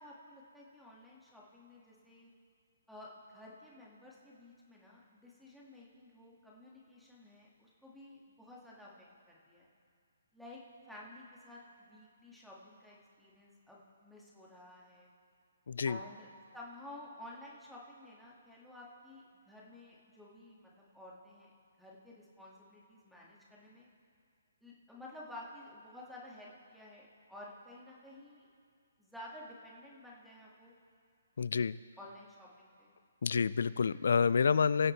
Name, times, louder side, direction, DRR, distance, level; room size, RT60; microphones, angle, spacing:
voice 1, 0.0-2.3 2.9-9.7 10.3-15.1 15.8-16.3 16.5-21.5 21.8-23.9 24.6-28.5 29.0-30.7 32.0-33.0, left 1 dB, ahead, -5 dB, 2.1 m, -52 dB
voice 2, 15.7-16.0 31.4-31.7 33.2-34.9, left 6 dB, 65° left, 18 dB, 0.3 m, -28 dB
23.0 x 7.8 x 3.4 m, 2.3 s
figure-of-eight pair, 140°, 0 cm